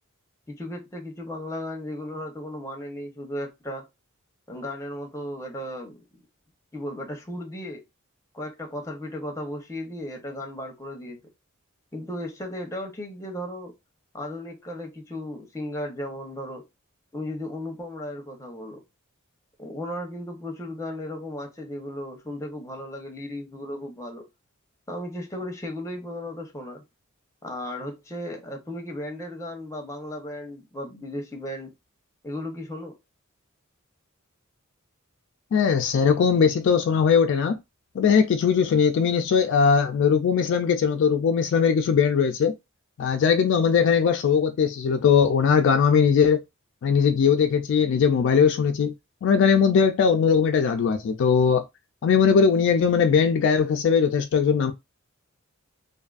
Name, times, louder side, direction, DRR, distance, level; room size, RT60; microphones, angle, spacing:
voice 1, 0.5-3.9 4.5-6.0 6.7-7.8 8.3-11.2 11.9-13.7 14.1-16.6 17.1-18.8 19.6-24.2 24.9-26.8 27.4-31.7 32.2-32.9, left 1 dB, 15° left, 0.7 m, -35 dB
voice 2, 35.5-37.6 38.0-42.5 43.0-46.4 46.8-48.9 49.2-51.6 52.0-54.7, left 6 dB, 60° left, 0.3 m, -20 dB
2.5 x 2.4 x 2.3 m
head